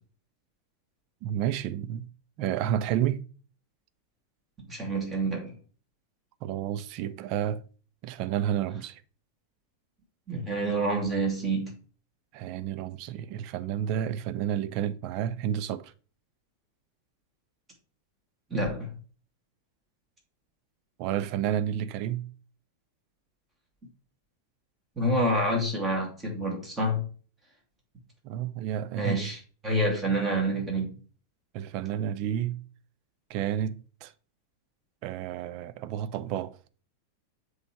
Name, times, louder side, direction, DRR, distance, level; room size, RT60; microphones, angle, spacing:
voice 1, 1.2-2.1 2.4-3.2 6.4-7.6 8.0-9.0 12.3-15.9 21.0-22.3 28.2-29.3 31.5-32.6 33.3-34.1 35.0-36.6, right 10 dB, 45° right, 0.5 m, -30 dB
voice 2, 4.7-5.5 10.3-11.7 18.5-18.9 25.0-27.1 29.0-29.4 29.6-30.9, right 1 dB, 20° right, 2.3 m, -27 dB
7.6 x 3.2 x 4.5 m
figure-of-eight pair, 90°, 0 cm